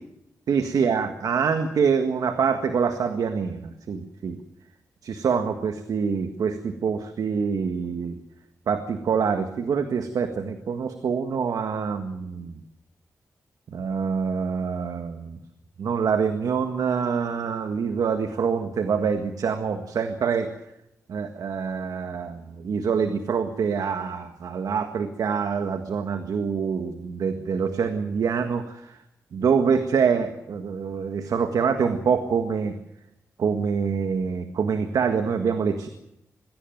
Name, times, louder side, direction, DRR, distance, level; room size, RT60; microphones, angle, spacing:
voice 1, 0.5-4.4 5.0-8.2 8.7-12.6 13.7-15.4 15.8-20.5 21.1-29.0 29.3-32.7 33.4-35.9, right 6 dB, 80° right, 7 dB, 1.7 m, -25 dB
22.0 x 16.0 x 9.3 m, 0.84 s
cardioid pair, 70°, 6 cm